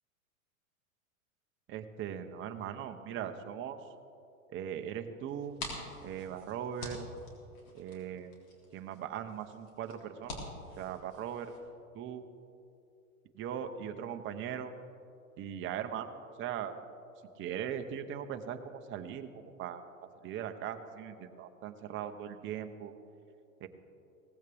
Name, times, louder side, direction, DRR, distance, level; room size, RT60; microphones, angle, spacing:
voice 1, 1.7-3.8 4.5-5.6 6.0-7.1 7.7-8.3 8.7-10.4 10.8-11.5 11.9-12.2 13.4-14.7 15.4-16.7 17.4-19.8 20.2-22.9 23.6-23.7, right 9 dB, 30° right, 6 dB, 0.9 m, -39 dB
sound 1, 5.3-11.6, left 2 dB, 50° left, 3.6 m, -47 dB
17.5 x 15.0 x 3.6 m, 2.7 s
hypercardioid pair, 110°, 41 cm